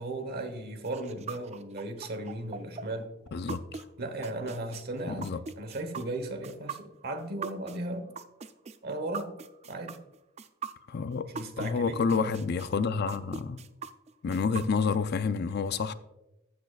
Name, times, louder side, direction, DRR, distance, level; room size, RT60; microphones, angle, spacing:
voice 1, 0.0-3.1 4.0-8.2 8.8-9.3 9.7-10.0 11.2-12.3, right 2 dB, 50° right, 1.1 m, -36 dB
sound 1, 0.8-11.7 12.1-15.1, right 5 dB, 30° right, 0.4 m, -40 dB
voice 2, 3.3-3.8 5.1-5.4 10.9-11.3 11.6-13.6 14.2-15.9, left 5 dB, 50° left, 0.4 m, -29 dB
14.5 x 6.5 x 2.4 m
head